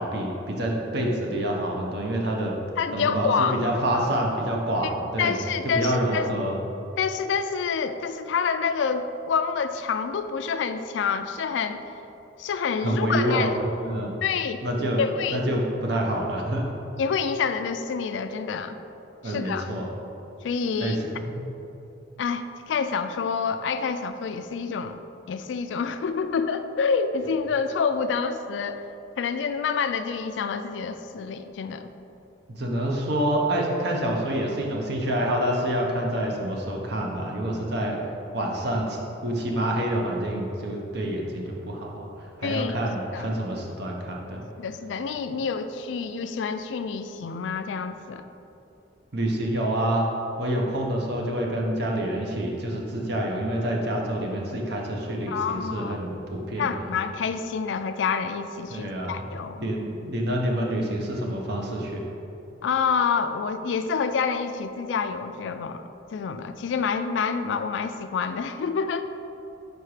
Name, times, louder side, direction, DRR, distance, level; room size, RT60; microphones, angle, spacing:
voice 1, 0.0-2.5 2.9-6.6 12.8-13.5 13.8-14.1 14.6-15.0 15.3-16.7 19.2-19.9 20.8-21.5 32.5-38.0 38.3-42.1 42.4-44.5 49.1-50.1 50.4-56.8 58.7-59.2 59.6-62.0, right 1 dB, 65° right, 0 dB, 0.8 m, -27 dB
voice 2, 2.8-3.6 5.2-6.3 7.0-11.8 12.4-13.5 14.2-14.6 15.0-15.4 17.0-18.8 19.2-19.7 20.4-21.0 22.2-25.0 25.3-28.8 29.2-31.9 42.4-42.8 43.1-43.4 44.6-48.2 55.3-56.0 56.6-59.6 62.6-65.8 66.1-69.0, left 5 dB, 80° left, 10 dB, 0.3 m, -27 dB
4.8 x 4.5 x 4.8 m, 2.9 s
head